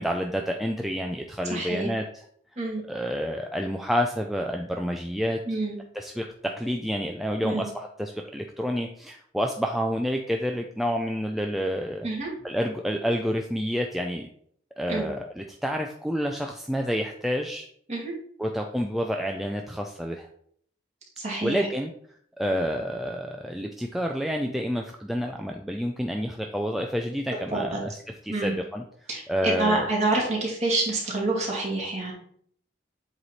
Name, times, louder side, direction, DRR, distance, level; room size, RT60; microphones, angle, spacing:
voice 1, 0.0-2.0 2.9-5.4 5.9-12.1 12.4-14.3 14.8-17.7 18.4-20.3 21.4-21.9 22.4-27.9 28.2-28.8 29.3-29.9, equal, ahead, 2 dB, 0.3 m, -29 dB
voice 2, 1.5-1.9 2.6-2.8 5.5-5.8 7.4-7.7 12.0-12.3 14.9-15.1 17.9-18.1 21.2-21.7 27.5-27.8 28.3-28.6 29.1-32.1, right 2 dB, 35° right, -3 dB, 2.0 m, -27 dB
7.8 x 3.1 x 4.1 m, 0.63 s
head